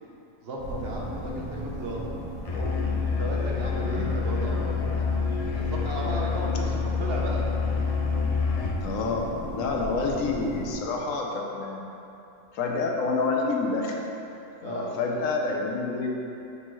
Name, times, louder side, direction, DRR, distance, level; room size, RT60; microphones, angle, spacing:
voice 1, 0.4-2.1 3.2-7.4 14.6-14.9, right 1 dB, 55° right, -2 dB, 1.0 m, -35 dB
sound 1, 0.6-10.7, equal, 70° right, 1.8 m, -36 dB
Musical instrument, 2.5-8.8, left 5 dB, 50° left, 0.4 m, -27 dB
voice 2, 3.9-4.5 8.8-11.9 12.5-14.0 14.6-16.2, left 3 dB, 80° left, 0 dB, 1.1 m, -28 dB
9.5 x 4.5 x 3.1 m, 2.9 s
omnidirectional pair, 1.4 m